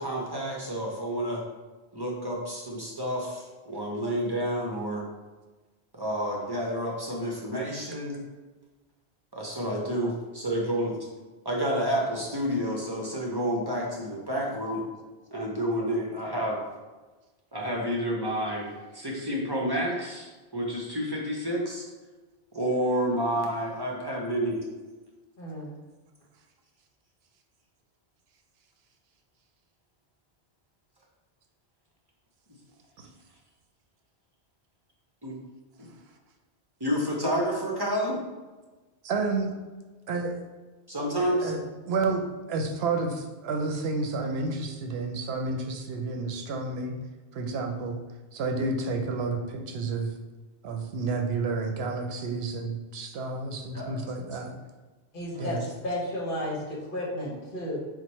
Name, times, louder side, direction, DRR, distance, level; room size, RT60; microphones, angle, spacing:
voice 1, 0.0-1.4 1.9-5.0 5.9-8.2 9.3-11.0 11.4-14.8 15.3-16.6 17.5-21.9 22.5-24.6 35.2-35.4 35.8-35.9 36.8-38.2 40.9-41.5 53.7-54.0 55.3-55.4, equal, 30° right, -2 dB, 0.5 m, -29 dB
voice 2, 25.4-25.7 55.1-55.6 55.8-57.8, left 1 dB, 55° left, -4 dB, 1.1 m, -33 dB
voice 3, 39.0-39.5 40.1-40.4 41.2-41.6 41.8-46.9 47.3-48.0 48.3-50.1 50.6-54.6 55.4-55.6, right 3 dB, 70° right, 4 dB, 0.8 m, -30 dB
4.5 x 2.1 x 4.1 m, 1.2 s
omnidirectional pair, 1.1 m